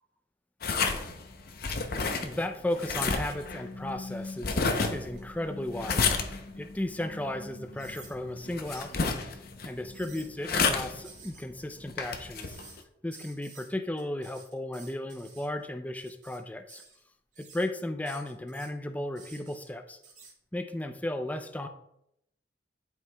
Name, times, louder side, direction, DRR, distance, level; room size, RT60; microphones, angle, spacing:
sound 1, 0.6-12.8, left 4 dB, 55° left, 0.6 m, -32 dB
voice 1, 2.2-12.6 13.0-16.8 17.4-20.0 20.5-21.7, left 1 dB, 10° left, 7 dB, 0.4 m, -35 dB
sound 2, 3.8-6.4 6.9-7.0 7.8-8.1 8.7-8.9 9.7-10.3 11.0-11.4 12.3-12.8 13.1-13.7 14.0-15.5 15.9-16.4 16.7-17.0 17.3-17.7 18.0-18.7 19.1-19.7 20.0-20.3, right 5 dB, 45° right, 2.6 m, -52 dB
11.0 x 4.7 x 2.2 m, 0.79 s
head